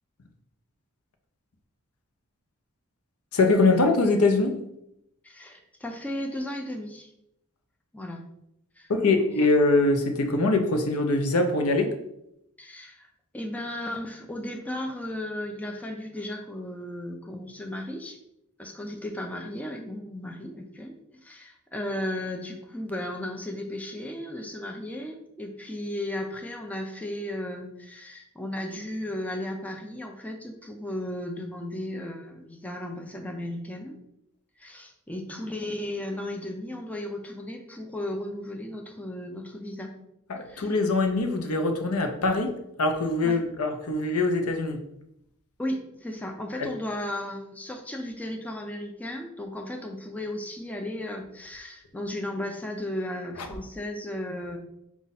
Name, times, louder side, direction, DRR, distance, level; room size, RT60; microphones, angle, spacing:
voice 1, 3.3-4.6 8.9-12.0 40.3-42.5 42.8-44.8 46.6-46.7 53.4-53.5, left 2 dB, 75° left, 5 dB, 0.7 m, -23 dB
voice 2, 5.2-7.1 7.9-8.2 8.8-8.9 12.6-18.2 18.6-33.9 34.6-39.9 40.5-40.7 43.2-43.4 45.6-54.6, left 1 dB, 5° left, 2 dB, 0.4 m, -35 dB
5.1 x 2.4 x 4.0 m, 0.79 s
head